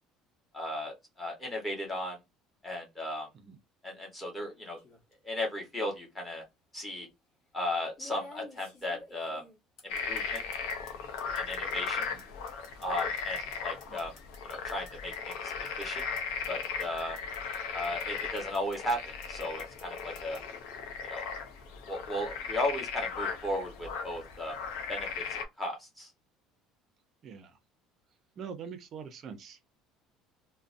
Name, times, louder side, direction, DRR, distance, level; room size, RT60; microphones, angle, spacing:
voice 1, 0.5-2.2 2.6-3.3 3.8-4.8 5.2-6.4 6.7-7.1 7.5-9.4 9.8-10.4 11.3-12.1 12.8-14.1 14.5-15.4 15.8-16.0 16.5-17.2 17.7-20.4 21.0-21.3 21.9-24.6 24.9-26.1, left 1 dB, 10° left, 0.9 m, -35 dB
sound 1, 4.8-5.1 6.3-6.4 8.0-10.9 11.2-17.6 17.8-18.9 19.2-20.4, left 2 dB, 45° left, 1.0 m, -51 dB
sound 2, 9.9-25.5, left 6 dB, 80° left, 0.5 m, -37 dB
voice 2, 28.4-29.7, right 6 dB, 30° right, 0.5 m, -44 dB
2.5 x 2.0 x 2.5 m
cardioid pair, 180°, 0 cm